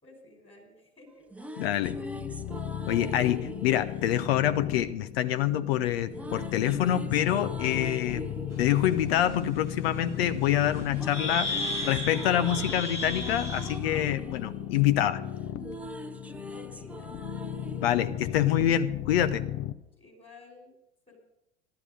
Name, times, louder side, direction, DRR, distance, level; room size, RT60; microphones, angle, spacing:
voice 1, 0.0-1.3 11.1-11.6 16.5-17.1 20.0-20.8 21.1-21.2, left 3 dB, 15° left, 1 dB, 5.4 m, -52 dB
sound 1, 1.1-5.2 6.1-10.3 10.6-19.1, right 1 dB, 5° right, 0.8 m, -42 dB
voice 2, 1.6-2.0 2.9-8.3 8.6-11.5 11.8-15.2 17.8-19.4, left 11 dB, 60° left, 12 dB, 1.0 m, -26 dB
sound 2, 1.8-19.7, left 11 dB, 40° left, 0.8 m, -36 dB
sound 3, 8.6-8.7 9.2-9.3 10.7-10.8 11.1-13.8, left 1 dB, 90° left, 1.7 m, -34 dB
13.5 x 12.5 x 5.3 m, 0.86 s
figure-of-eight pair, 75°, 34 cm